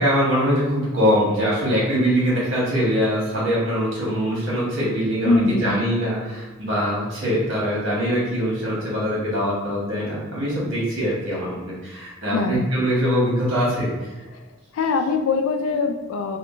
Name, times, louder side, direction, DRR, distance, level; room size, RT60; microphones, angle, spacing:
voice 1, 0.0-14.1, equal, 65° right, -6 dB, 1.3 m, -23 dB
voice 2, 5.3-5.7 12.3-12.6 14.3-14.4 14.7-16.4, left 3 dB, 75° left, 6 dB, 0.3 m, -22 dB
3.6 x 2.3 x 2.4 m, 1.2 s
head